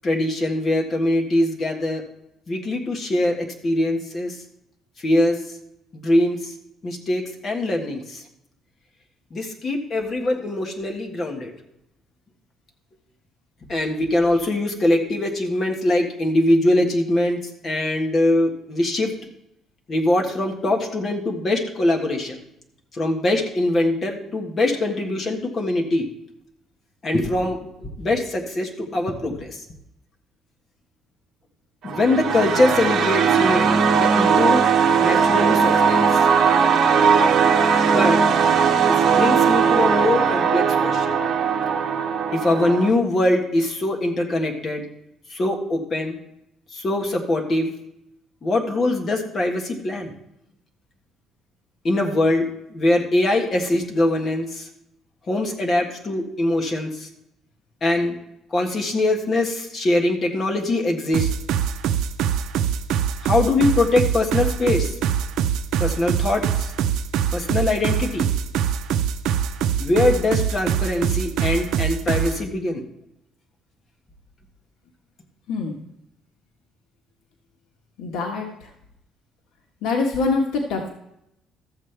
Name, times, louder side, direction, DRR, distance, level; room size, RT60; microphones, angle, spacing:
voice 1, 0.0-2.0 2.5-4.3 5.0-5.4 5.9-6.5 6.8-8.2 9.3-11.5 13.7-19.1 19.9-22.4 22.9-26.0 27.0-27.7 28.0-29.6 31.8-34.6 35.0-36.0 37.8-38.2 38.8-41.2 42.3-44.8 45.3-46.1 46.7-47.7 48.4-50.1 51.8-54.7 55.3-57.1 57.8-58.1 58.5-61.3 63.2-64.9 65.8-66.7 67.3-68.3 69.8-72.8, left 2 dB, 30° left, 2 dB, 1.6 m, -22 dB
sound 1, 31.8-42.9, right 6 dB, 50° right, 1.1 m, -18 dB
sound 2, 61.1-72.4, right 9 dB, 80° right, 0.6 m, -23 dB
voice 2, 75.5-75.8 78.0-78.7 79.8-80.9, left 4 dB, 85° left, 1 dB, 1.4 m, -24 dB
13.5 x 7.6 x 3.4 m, 0.80 s
cardioid pair, 155°, 0 cm